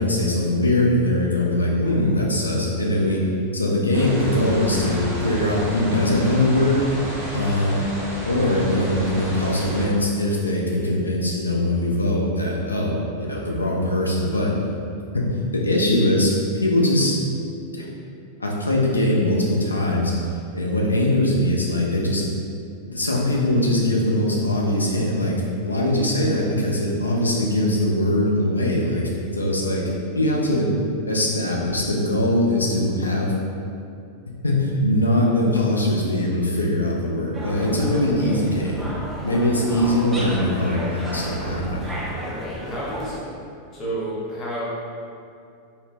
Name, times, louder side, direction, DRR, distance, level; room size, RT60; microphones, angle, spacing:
voice 1, 0.0-3.2 3.5-6.8 7.3-7.8 8.2-14.5 15.1-15.2 15.5-16.3 16.6-17.2 17.7-17.9 18.4-20.1 20.5-22.2 22.9-29.9 30.2-30.7 31.1-33.3 34.4-38.9 39.2-41.9, left 1 dB, 80° left, -3 dB, 0.4 m, -21 dB
sound 1, 3.9-9.9, equal, 45° right, 0.9 m, -31 dB
sound 2, 37.3-43.2, equal, 10° right, 0.4 m, -33 dB
voice 2, 42.2-43.2 43.7-44.6, right 1 dB, 25° left, -7 dB, 0.8 m, -31 dB
2.7 x 2.1 x 3.1 m, 2.5 s
figure-of-eight pair, 90°, 0 cm